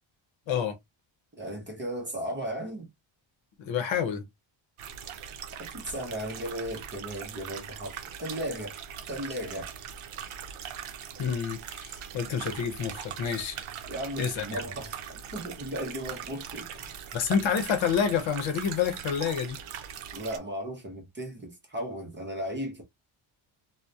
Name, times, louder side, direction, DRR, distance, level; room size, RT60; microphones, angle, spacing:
voice 1, 1.4-2.9 5.6-8.8 9.1-9.7 13.9-16.9 20.1-22.8, equal, 25° right, 0.6 m, -36 dB
voice 2, 3.6-4.2 11.2-13.6 14.2-14.6 17.1-19.6, left 7 dB, 65° left, 0.7 m, -28 dB
sound 1, 4.8-20.4, right 8 dB, 85° right, 0.6 m, -41 dB
2.7 x 2.1 x 2.3 m
wide cardioid pair, 175°, 49 cm